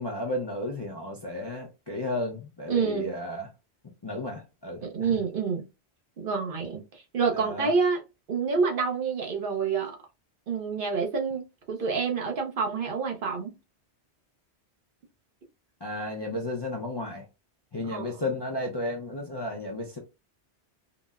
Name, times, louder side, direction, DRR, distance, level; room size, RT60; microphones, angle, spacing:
voice 1, 0.0-3.5 4.0-5.2 7.3-7.7 15.8-17.3 17.7-20.0, left 1 dB, 35° left, 0.4 m, -33 dB
voice 2, 2.7-3.1 4.8-5.6 6.2-8.0 8.3-10.0 10.5-13.5 17.9-18.2, right 5 dB, 55° right, 0.8 m, -28 dB
3.9 x 2.0 x 2.3 m
omnidirectional pair, 1.1 m